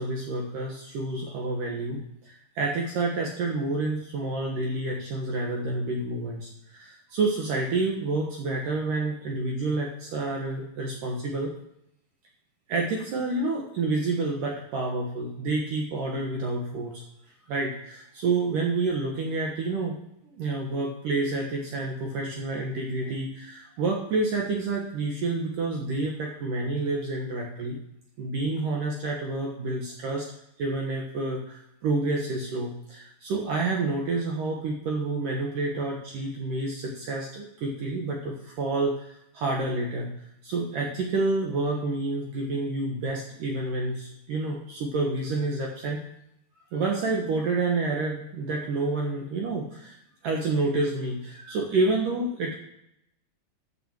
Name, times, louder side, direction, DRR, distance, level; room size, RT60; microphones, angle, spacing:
voice 1, 0.0-11.5 12.7-17.0 17.5-20.0 20.3-27.8 28.2-30.3 30.6-40.1 40.4-46.0 46.7-50.0 50.2-52.6, right 3 dB, 60° right, 0 dB, 2.4 m, -29 dB
9.8 x 6.9 x 7.3 m, 0.78 s
omnidirectional pair, 5.1 m